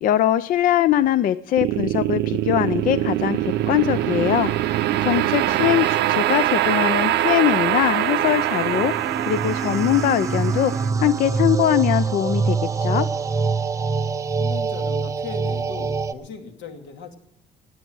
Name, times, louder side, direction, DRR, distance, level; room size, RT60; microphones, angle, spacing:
voice 1, 0.0-8.9 9.3-10.7 11.0-13.1, left 11 dB, 50° left, 15 dB, 0.4 m, -21 dB
sound 1, 1.6-12.8, right 14 dB, 65° right, 0.6 m, -23 dB
voice 2, 5.3-5.9 14.4-17.2, left 5 dB, 75° left, 4 dB, 2.5 m, -38 dB
sound 2, 5.9-16.1, right 4 dB, 15° right, 0.4 m, -26 dB
17.0 x 10.0 x 6.1 m, 0.77 s
cardioid pair, 180°, 19 cm